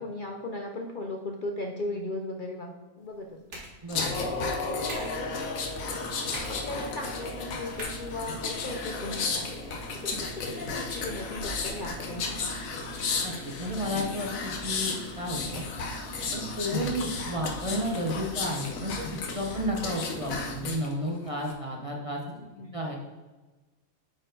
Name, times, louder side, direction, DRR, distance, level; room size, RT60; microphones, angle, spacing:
voice 1, 0.0-5.7 6.0-9.5 9.9-12.3 19.5-19.7 22.3-22.8, left 2 dB, 55° left, 2 dB, 0.6 m, -38 dB
sound 1, 3.0-9.0, equal, 55° right, 2.1 m, -47 dB
voice 2, 3.8-4.2 13.2-14.3 14.6-15.6 16.3-19.0 19.3-22.2 22.7-23.0, equal, 30° right, -1 dB, 0.7 m, -32 dB
sound 2, 3.9-20.9 21.3-21.5, left 3 dB, 75° left, 1.3 m, -33 dB
8.7 x 4.4 x 3.9 m, 1.2 s
omnidirectional pair, 1.4 m